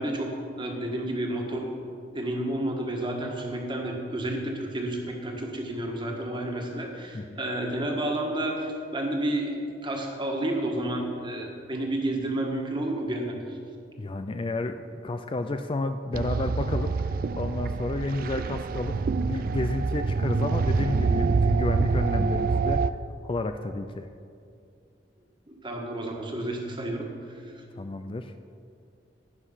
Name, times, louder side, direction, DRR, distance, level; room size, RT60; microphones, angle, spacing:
voice 1, 0.0-1.7 2.1-9.6 9.8-13.6 25.5-27.4, right 1 dB, 30° right, 1 dB, 1.6 m, -31 dB
voice 2, 14.0-16.9 17.4-22.9 23.2-24.1 27.8-28.3, left 2 dB, 30° left, 8 dB, 0.4 m, -31 dB
sound 1, 16.1-22.9, right 4 dB, 55° right, 0.3 m, -26 dB
11.0 x 10.0 x 5.7 m, 2.4 s
head